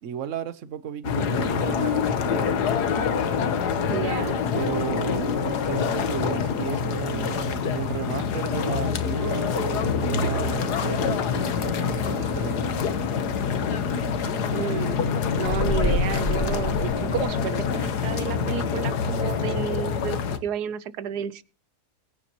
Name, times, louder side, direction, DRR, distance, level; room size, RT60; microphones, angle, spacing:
voice 1, 0.0-2.5 4.5-12.9, right 9 dB, 55° right, 1.1 m, -34 dB
sound 1, 1.0-20.4, left 6 dB, 85° left, 1.7 m, -26 dB
voice 2, 3.9-4.4 14.5-15.0 15.4-21.4, right 9 dB, 90° right, 1.4 m, -31 dB
sound 2, 15.4-17.8, left 1 dB, 30° left, 2.3 m, -29 dB
22.0 x 10.0 x 3.0 m
omnidirectional pair, 1.7 m